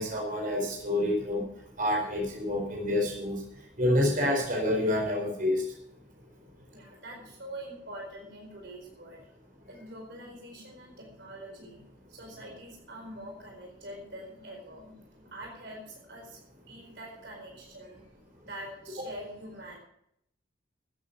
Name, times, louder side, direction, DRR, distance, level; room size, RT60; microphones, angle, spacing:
voice 1, 0.0-1.4 1.8-3.4 3.8-5.6, left 1 dB, 45° right, 0 dB, 4.6 m, -27 dB
voice 2, 6.7-9.2 9.6-11.8 12.1-18.0 18.4-19.8, right 1 dB, 60° right, 0 dB, 4.5 m, -45 dB
14.5 x 9.4 x 6.0 m, 0.74 s
head